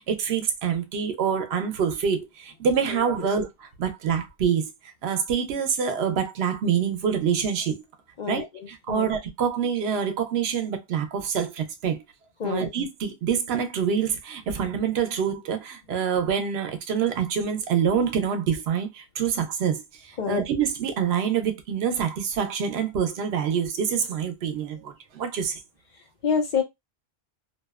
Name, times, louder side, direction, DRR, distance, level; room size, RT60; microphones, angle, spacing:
voice 1, 0.0-3.5 3.8-4.7 5.0-7.7 8.3-12.0 12.4-25.6, right 7 dB, 85° right, 0.8 m, -26 dB
voice 2, 2.9-3.3 8.2-9.1 12.4-12.7 20.2-20.4 26.2-26.6, left 6 dB, 55° left, 0.6 m, -28 dB
2.6 x 2.0 x 2.2 m
omnidirectional pair, 1.0 m